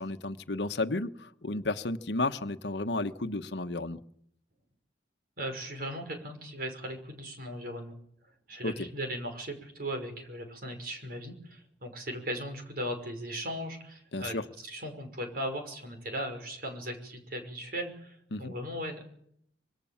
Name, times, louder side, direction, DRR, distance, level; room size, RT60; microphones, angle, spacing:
voice 1, 0.0-4.0 8.6-8.9 14.1-14.4 18.3-18.5, left 2 dB, 70° left, 9 dB, 1.2 m, -32 dB
voice 2, 5.4-8.0 8.5-19.0, equal, 55° right, 5 dB, 5.7 m, -38 dB
25.5 x 23.0 x 7.3 m, 0.70 s
head